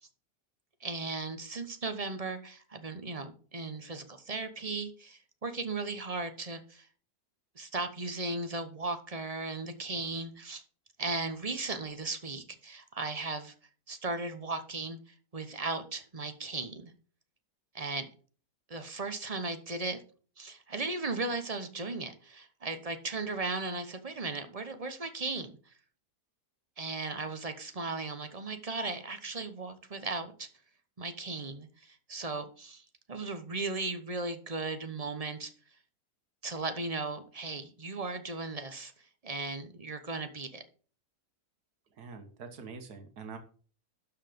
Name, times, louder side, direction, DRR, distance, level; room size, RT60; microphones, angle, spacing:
voice 1, 0.8-6.9 7.5-10.6 11.0-13.5 13.9-15.0 15.3-16.9 17.7-18.1 18.7-20.0 20.4-25.7 26.8-30.5 31.0-35.5 36.4-40.6, right 3 dB, 30° right, 9 dB, 0.8 m, -36 dB
voice 2, 41.9-43.4, right 5 dB, 80° right, 6 dB, 1.9 m, -45 dB
12.0 x 4.9 x 5.1 m, 0.41 s
omnidirectional pair, 1.7 m